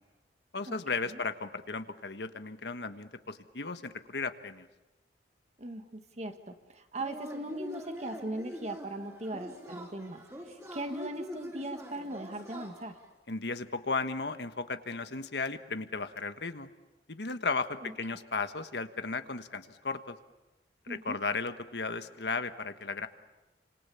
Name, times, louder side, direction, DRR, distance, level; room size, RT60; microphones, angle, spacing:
voice 1, 0.5-4.7 13.3-16.7 17.1-20.2 20.9-23.1, left 4 dB, 70° left, 9 dB, 1.4 m, -35 dB
voice 2, 5.6-13.0 17.8-17.9 20.9-21.2, right 1 dB, 40° right, 7 dB, 1.8 m, -39 dB
Yell / Cheering, 6.9-13.1, equal, 15° right, 4.1 m, -44 dB
29.5 x 26.5 x 7.0 m, 1.0 s
head